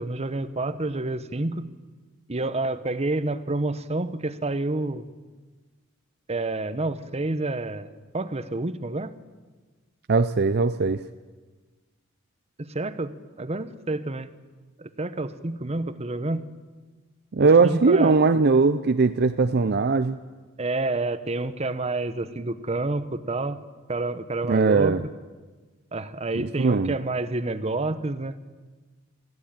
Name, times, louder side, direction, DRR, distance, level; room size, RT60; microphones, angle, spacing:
voice 1, 0.0-1.7 2.3-5.0 6.3-9.1 12.6-14.3 14.8-16.5 17.4-18.2 20.6-23.6 23.9-25.0 25.9-28.3, right 2 dB, 30° right, 13 dB, 1.0 m, -29 dB
voice 2, 10.1-11.0 17.3-20.2 24.5-25.0 26.4-27.0, right 4 dB, 50° right, 10 dB, 0.6 m, -20 dB
21.5 x 14.5 x 8.9 m, 1.3 s
head